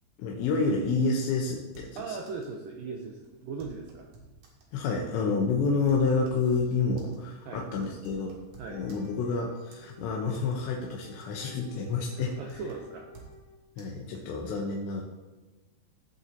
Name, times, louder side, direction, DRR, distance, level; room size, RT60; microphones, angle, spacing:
voice 1, 0.2-2.2 4.7-8.3 8.7-12.4 13.8-15.0, left 4 dB, 90° left, -1 dB, 3.2 m, -29 dB
sound 1, 1.7-2.6 2.9-3.0 3.2-4.7 5.3-9.3 9.7-10.6 10.9-11.5 11.8-13.4 13.8-13.9, right 4 dB, 55° right, 2.8 m, -53 dB
voice 2, 2.0-4.1 7.5-7.6 8.6-8.8 12.1-13.1, right 4 dB, 80° right, 1 dB, 2.0 m, -39 dB
Wind instrument woodwind instrument, 8.6-13.8, equal, 65° left, 4.7 m, -53 dB
17.0 x 7.5 x 2.8 m, 1.2 s
omnidirectional pair, 5.0 m